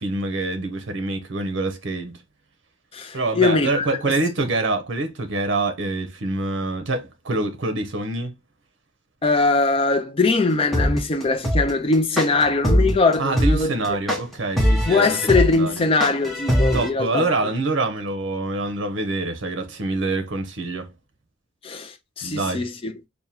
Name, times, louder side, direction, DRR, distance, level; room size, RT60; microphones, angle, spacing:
voice 1, 0.0-2.2 3.1-8.3 13.2-15.8 16.7-20.9 22.2-22.6, right 2 dB, 65° right, 0.7 m, -25 dB
voice 2, 2.9-4.2 9.2-14.0 14.8-17.3 21.6-22.9, left 3 dB, 25° left, 0.4 m, -21 dB
sound 1, 10.7-16.9, equal, ahead, 0.8 m, -20 dB
3.5 x 2.2 x 4.2 m
head